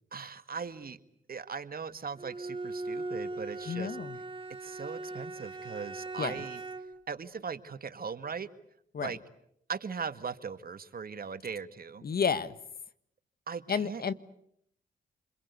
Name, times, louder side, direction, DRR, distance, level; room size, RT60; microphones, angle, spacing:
voice 1, 0.1-1.0 1.3-4.0 4.6-6.6 7.1-8.5 9.0-9.2 9.7-12.0 13.5-14.0, right 6 dB, 50° right, 11 dB, 1.8 m, -39 dB
Bowed string instrument, 2.2-7.0, right 3 dB, 25° right, 2.0 m, -39 dB
voice 2, 3.7-4.2 6.2-6.4 8.9-9.1 12.0-12.5 13.7-14.1, left 6 dB, 50° left, 14 dB, 1.4 m, -31 dB
29.0 x 22.5 x 8.3 m, 0.73 s
cardioid pair, 60°, 19 cm